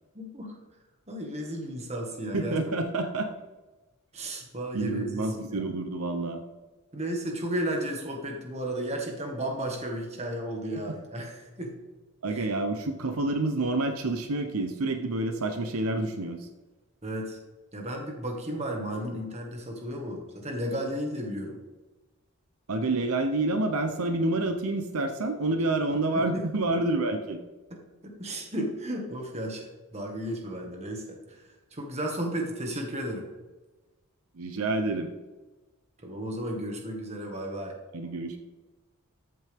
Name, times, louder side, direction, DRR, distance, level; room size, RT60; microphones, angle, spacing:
voice 1, 0.2-0.6 1.1-2.6 4.1-5.7 6.9-11.7 17.0-17.4 17.7-21.6 26.1-26.4 27.7-31.4 31.7-33.3 36.0-37.8, right 1 dB, 30° right, 2 dB, 1.8 m, -34 dB
voice 2, 2.3-3.3 4.7-6.4 12.2-16.5 22.7-27.4 34.4-35.1 37.9-38.4, right 2 dB, 75° right, 6 dB, 0.9 m, -28 dB
13.5 x 7.8 x 3.6 m, 1.2 s
head